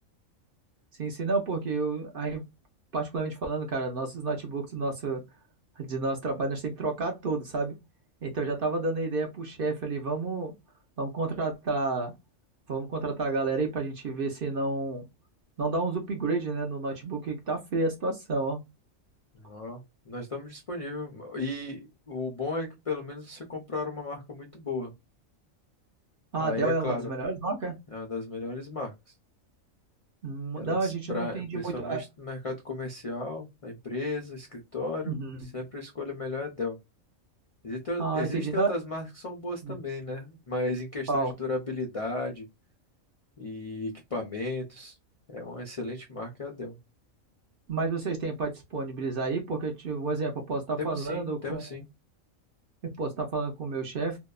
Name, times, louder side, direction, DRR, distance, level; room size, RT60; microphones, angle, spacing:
voice 1, 1.0-2.4 2.9-5.2 5.8-7.7 8.2-10.5 11.0-12.1 12.7-15.0 15.6-18.6 26.3-27.8 30.2-32.0 35.1-35.4 38.0-38.7 39.6-39.8 41.1-41.3 47.7-51.6 52.8-54.2, right 3 dB, 55° right, 0.6 m, -30 dB
voice 2, 19.3-24.9 26.4-27.1 27.9-28.9 30.6-36.8 37.6-42.5 43.4-45.0 45.3-46.8 50.8-51.9, left 2 dB, 60° left, 0.3 m, -35 dB
2.7 x 2.1 x 2.2 m
omnidirectional pair, 1.4 m